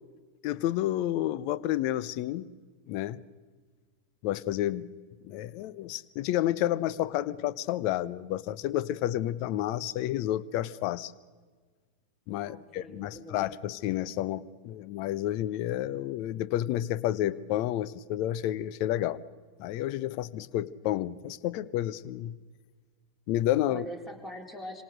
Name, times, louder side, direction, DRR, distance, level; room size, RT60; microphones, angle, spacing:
voice 1, 0.4-2.5 2.9-3.2 4.2-4.9 5.2-11.1 12.3-19.2 19.6-22.4 23.3-23.8, left 13 dB, 45° left, 19 dB, 0.8 m, -30 dB
voice 2, 12.4-13.5 23.7-24.8, equal, 15° left, 4 dB, 3.9 m, -42 dB
26.5 x 25.5 x 6.6 m, 1.5 s
figure-of-eight pair, 90°, 0 cm